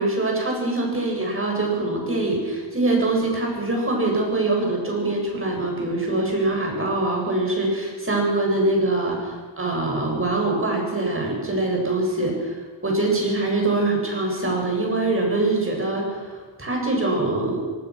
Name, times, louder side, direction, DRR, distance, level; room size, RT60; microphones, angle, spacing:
voice 1, 0.0-17.6, right 2 dB, 30° right, 0 dB, 7.7 m, -23 dB
24.5 x 19.5 x 6.4 m, 1.5 s
wide cardioid pair, 100°, 45 cm